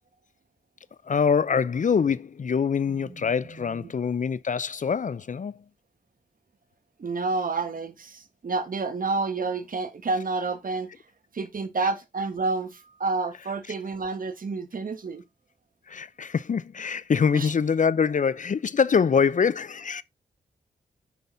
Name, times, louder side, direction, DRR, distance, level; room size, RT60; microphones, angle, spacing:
voice 1, 1.0-5.6 15.9-20.0, left 6 dB, 50° left, 0.6 m, -24 dB
voice 2, 3.5-3.9 7.0-10.9 11.3-15.2 17.3-17.5, right 3 dB, 55° right, 1.6 m, -29 dB
9.2 x 5.9 x 3.9 m
cardioid pair, 75°, 17 cm